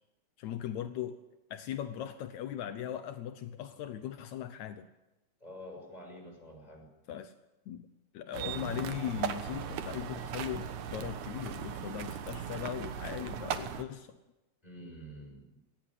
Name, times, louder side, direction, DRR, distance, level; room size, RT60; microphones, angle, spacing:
voice 1, 0.4-1.2 1.5-4.9 7.1-7.3 7.7-7.9 8.1-14.2, left 10 dB, 80° left, 10 dB, 2.3 m, -39 dB
voice 2, 5.4-6.9 14.6-15.6, equal, 10° left, 2 dB, 6.3 m, -48 dB
sound 1, 8.3-13.8, right 8 dB, 80° right, 2.7 m, -38 dB
18.5 x 18.5 x 9.9 m, 1.0 s
omnidirectional pair, 3.3 m